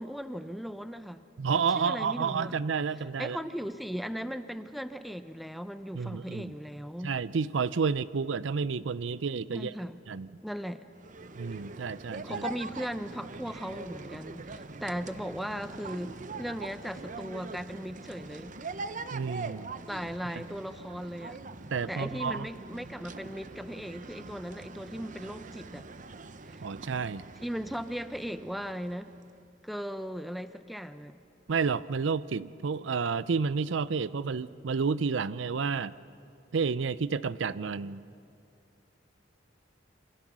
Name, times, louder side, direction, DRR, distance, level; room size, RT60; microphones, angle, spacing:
voice 1, 0.0-1.2 1.7-2.6 3.2-7.2 9.5-10.0 10.4-10.9 12.2-18.6 19.9-21.4 21.9-25.9 26.5-26.6 27.4-29.1 29.6-31.2, equal, ahead, 11 dB, 0.7 m, -37 dB
voice 2, 1.4-3.4 5.9-6.5 7.0-9.8 10.1-10.3 11.3-12.4 19.1-19.7 21.7-22.5 26.6-27.2 31.5-35.9 36.5-38.0, right 5 dB, 80° right, 17 dB, 0.5 m, -30 dB
sound 1, 10.9-29.4, right 3 dB, 45° right, 0.7 m, -43 dB
27.0 x 25.0 x 6.2 m, 2.5 s
head